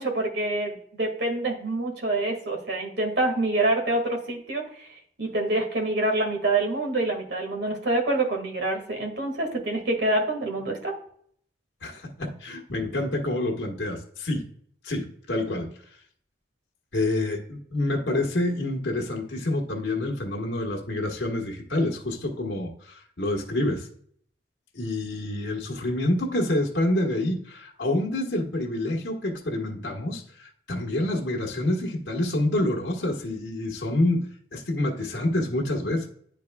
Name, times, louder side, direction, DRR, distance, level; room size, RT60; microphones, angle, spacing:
voice 1, 0.0-4.9 5.2-11.0, right 2 dB, 70° right, 1.8 m, -26 dB
voice 2, 11.8-14.5 14.8-15.7 16.9-23.9 24.7-36.1, left 1 dB, 90° left, 1.3 m, -27 dB
10.0 x 4.7 x 2.2 m
head